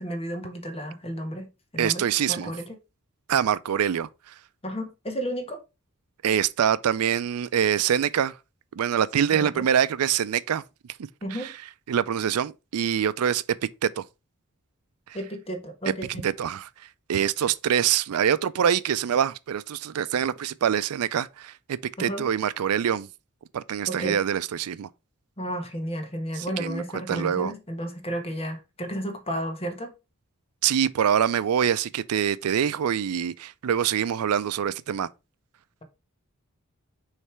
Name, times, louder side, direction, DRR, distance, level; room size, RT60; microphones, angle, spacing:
voice 1, 0.0-1.5 1.7-2.8 4.6-5.6 9.3-9.7 11.2-11.5 15.1-16.2 22.0-22.3 23.9-24.2 25.4-29.9, equal, 25° left, 1.3 m, -32 dB
voice 2, 1.8-2.5 3.3-4.3 6.2-8.4 8.7-10.6 11.4-11.5 11.9-13.4 13.8-14.0 16.2-16.7 17.1-23.1 23.5-24.9 26.4-26.8 27.1-27.5 30.6-35.1, right 8 dB, 85° right, 0.4 m, -25 dB
6.6 x 3.2 x 4.5 m
head